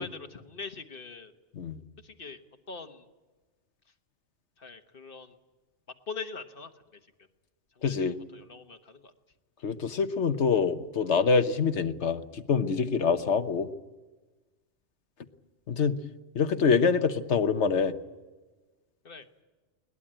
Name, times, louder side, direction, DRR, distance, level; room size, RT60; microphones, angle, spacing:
voice 1, 0.0-1.3 2.0-2.4 2.7-3.0 4.6-5.4 6.1-7.1 7.7-9.1 19.0-19.3, left 4 dB, 50° left, 7 dB, 1.4 m, -43 dB
voice 2, 7.8-8.2 9.6-13.7 15.7-16.0 16.3-18.0, left 5 dB, 65° left, 10 dB, 1.3 m, -25 dB
21.5 x 19.5 x 8.9 m, 1.2 s
omnidirectional pair, 1.3 m